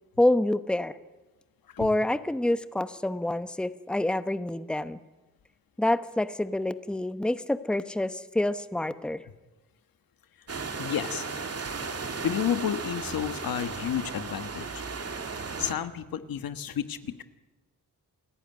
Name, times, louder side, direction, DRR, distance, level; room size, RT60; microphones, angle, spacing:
voice 1, 0.2-1.0 1.8-5.0 5.8-9.2, left 1 dB, 5° left, 12 dB, 0.9 m, -27 dB
sound 1, 10.5-15.7, right 4 dB, 45° right, 2.3 m, -35 dB
voice 2, 10.8-11.2 12.2-14.7 15.6-17.2, left 9 dB, 80° left, 10 dB, 1.4 m, -31 dB
27.5 x 14.5 x 9.5 m, 1.1 s
cardioid pair, 90°, 34 cm